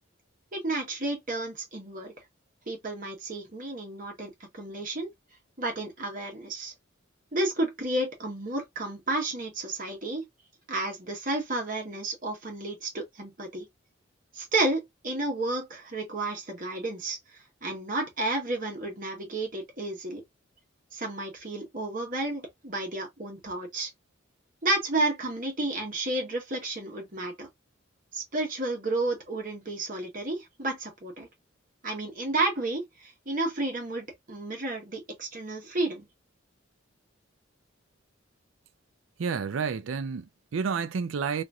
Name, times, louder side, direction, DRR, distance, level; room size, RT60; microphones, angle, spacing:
voice 1, 0.5-2.1 2.7-5.1 5.6-6.7 7.3-10.3 10.7-13.7 14.3-20.2 20.9-23.9 24.6-27.5 28.1-31.3 31.8-36.1, right 2 dB, 45° right, 1.2 m, -31 dB
voice 2, 39.2-41.4, right 5 dB, 80° right, 0.4 m, -30 dB
2.9 x 2.5 x 2.3 m
head